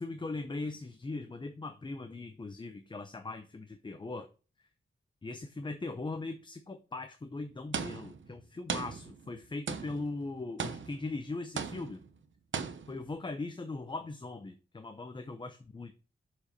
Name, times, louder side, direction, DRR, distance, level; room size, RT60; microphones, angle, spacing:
voice 1, 0.0-4.3 4.6-4.7 5.2-12.0 12.9-15.9, left 3 dB, 20° left, 0.6 m, -40 dB
sound 1, 7.7-8.3 8.7-9.4 9.7-10.2 10.6-11.2 11.6-12.1 12.5-13.1, right 6 dB, 65° right, 0.9 m, -38 dB
7.1 x 4.9 x 5.1 m
wide cardioid pair, 140°, 21 cm